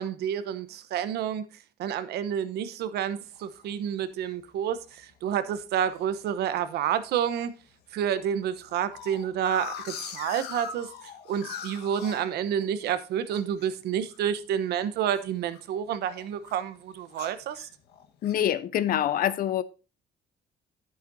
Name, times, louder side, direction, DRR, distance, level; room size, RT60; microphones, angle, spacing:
voice 1, 0.0-1.4 1.8-7.5 7.9-10.9 11.3-17.7, right 9 dB, 75° right, 1.0 m, -29 dB
sound 1, 3.3-3.7 4.2-4.3 4.6-4.9 5.3-6.0 6.6-7.0 7.3-7.4 7.7-7.8 8.1-13.0 13.3-15.8 16.1-16.6 17.1-18.5, left 8 dB, 75° left, 1.4 m, -42 dB
voice 2, 18.2-19.6, left 10 dB, 60° left, 0.8 m, -25 dB
10.5 x 9.3 x 2.7 m
cardioid pair, 110°, 17 cm